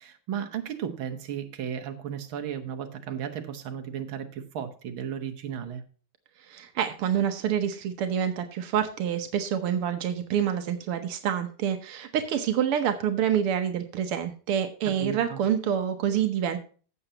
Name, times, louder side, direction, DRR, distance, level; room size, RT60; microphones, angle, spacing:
voice 1, 0.0-5.8 14.9-15.4, right 8 dB, 70° right, 6 dB, 2.0 m, -35 dB
voice 2, 6.5-16.6, right 9 dB, 85° right, 7 dB, 1.9 m, -27 dB
15.5 x 7.0 x 2.9 m, 0.39 s
omnidirectional pair, 2.4 m